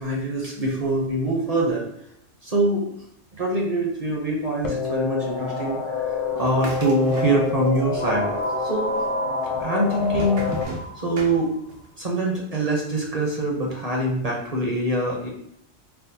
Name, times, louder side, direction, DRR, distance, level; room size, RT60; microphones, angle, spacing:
voice 1, 0.0-1.9 2.4-2.9 3.4-8.3 8.6-8.9 9.6-10.4 11.0-11.6 12.0-15.3, right 1 dB, 40° right, -2 dB, 0.6 m, -24 dB
sound 1, 4.6-10.6, left 5 dB, 40° left, 0.5 m, -27 dB
sound 2, 6.4-7.8 8.1-8.8 9.4-11.9, right 2 dB, 80° right, 1.1 m, -35 dB
sound 3, 8.0-11.6, right 1 dB, 75° left, 0.9 m, -33 dB
4.4 x 2.0 x 2.7 m, 0.74 s
omnidirectional pair, 1.3 m